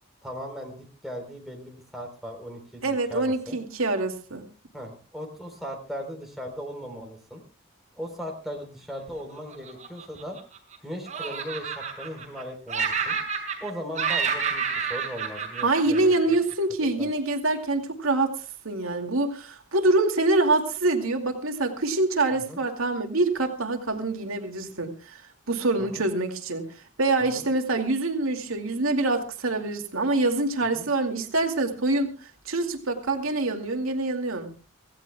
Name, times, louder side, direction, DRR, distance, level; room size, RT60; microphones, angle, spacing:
voice 1, 0.2-3.6 4.7-7.4 8.0-10.4 10.8-13.2 13.6-16.4 17.0-17.1 22.3-22.6 25.8-26.0 27.2-27.4 30.8-30.9, equal, ahead, 1 dB, 3.9 m, -38 dB
voice 2, 2.8-4.5 15.6-18.3 18.6-25.2 25.5-26.7 27.0-32.1 32.5-34.5, right 2 dB, 75° right, 4 dB, 2.5 m, -25 dB
Laughter, 9.5-10.8 11.1-12.4 12.7-13.7 14.0-16.5, right 6 dB, 35° right, 6.2 m, -29 dB
26.0 x 16.5 x 2.3 m, 0.34 s
head